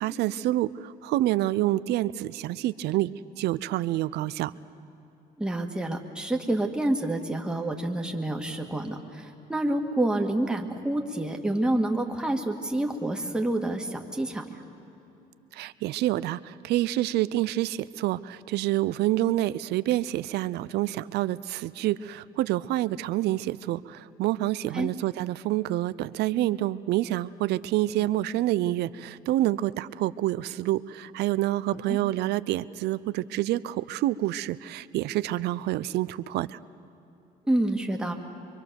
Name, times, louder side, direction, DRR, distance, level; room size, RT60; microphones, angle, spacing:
voice 1, 0.0-3.1 3.4-4.5 15.5-36.6, right 15 dB, 75° right, 16 dB, 0.6 m, -27 dB
voice 2, 5.4-14.6 24.7-24.9 31.9-32.0 37.5-38.1, right 1 dB, 5° right, 2 dB, 1.9 m, -28 dB
24.5 x 24.0 x 7.0 m, 2.9 s
cardioid pair, 110°, 17 cm